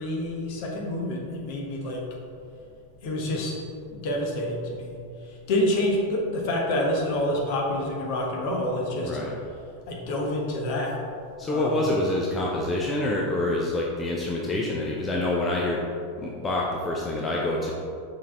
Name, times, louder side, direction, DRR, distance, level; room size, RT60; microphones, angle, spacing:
voice 1, 0.0-2.1 3.0-3.6 3.9-9.2 9.9-11.0 11.4-11.8, left 1 dB, 45° left, -1 dB, 1.2 m, -28 dB
voice 2, 11.4-15.8 16.2-17.7, left 2 dB, 20° left, -3 dB, 0.7 m, -26 dB
6.2 x 4.1 x 4.5 m, 2.4 s
figure-of-eight pair, 90°, 0 cm